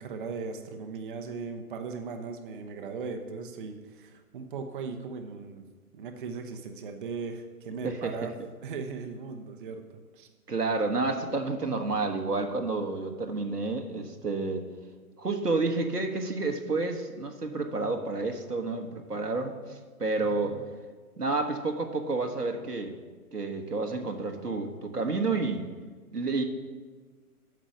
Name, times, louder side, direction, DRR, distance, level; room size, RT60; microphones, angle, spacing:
voice 1, 0.0-5.6 5.9-8.3 8.6-10.3 20.2-20.6, right 5 dB, 35° right, 5 dB, 0.7 m, -38 dB
voice 2, 10.5-14.7 15.2-20.5 21.2-23.0 23.3-25.7 26.1-26.4, right 3 dB, 90° right, 4 dB, 1.4 m, -30 dB
9.1 x 6.3 x 6.2 m, 1.4 s
figure-of-eight pair, 125°, 46 cm